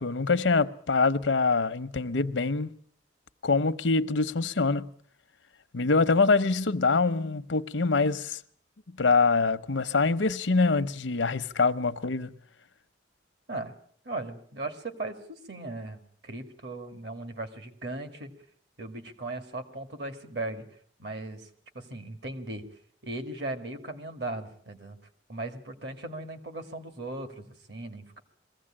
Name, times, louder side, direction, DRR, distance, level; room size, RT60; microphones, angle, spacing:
voice 1, 0.0-2.7 3.4-4.9 5.7-8.4 9.0-12.3, left 4 dB, 80° left, 0.8 m, -24 dB
voice 2, 14.1-18.3 18.8-20.6 21.0-21.5 21.7-22.7 23.0-25.0 25.3-28.2, right 2 dB, 60° right, 2.1 m, -37 dB
22.5 x 15.5 x 8.7 m
head